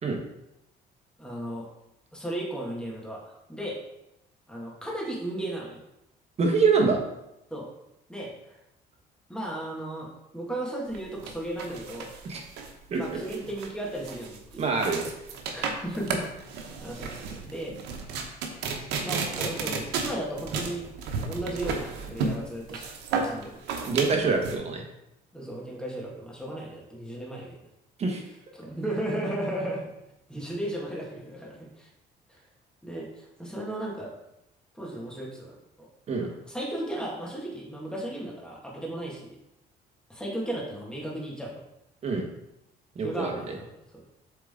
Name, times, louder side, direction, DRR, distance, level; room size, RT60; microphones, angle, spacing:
voice 1, 1.2-1.7 2.1-3.8 4.5-5.8 7.5-7.7 8.1-8.3 9.3-10.1 10.3-12.1 13.0-14.6 15.5-16.5 16.8-17.8 19.0-20.9 21.1-22.9 23.2-23.6 25.3-27.6 28.5-29.8 30.3-31.9 32.3-32.4 32.8-34.1 34.7-35.9 36.2-39.4 40.1-41.5 43.0-44.0, right 1 dB, 5° left, -3 dB, 1.8 m, -35 dB
voice 2, 6.4-7.0 12.2-12.4 12.9-13.2 14.6-15.1 23.8-24.8 28.0-28.2 36.1-36.3 42.0-42.2 42.9-43.6, right 4 dB, 40° right, 2 dB, 1.3 m, -25 dB
sound 1, 10.9-24.6, right 5 dB, 85° right, 0.9 m, -33 dB
7.3 x 3.8 x 3.7 m, 0.86 s
cardioid pair, 110°, 17 cm